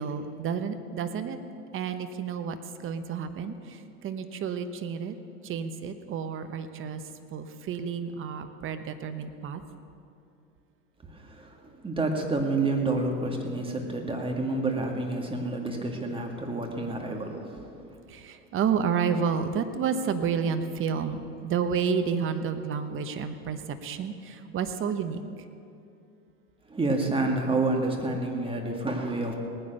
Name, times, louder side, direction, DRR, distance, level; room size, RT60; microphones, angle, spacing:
voice 1, 0.0-1.4 1.7-2.6 2.8-5.2 5.4-7.0 7.3-9.6 18.1-25.2, right 6 dB, 30° right, 9 dB, 1.1 m, -30 dB
voice 2, 11.1-17.7 26.7-29.3, right 2 dB, 10° right, 2 dB, 2.2 m, -29 dB
18.5 x 9.9 x 6.9 m, 2.6 s
hypercardioid pair, 105°, 44 cm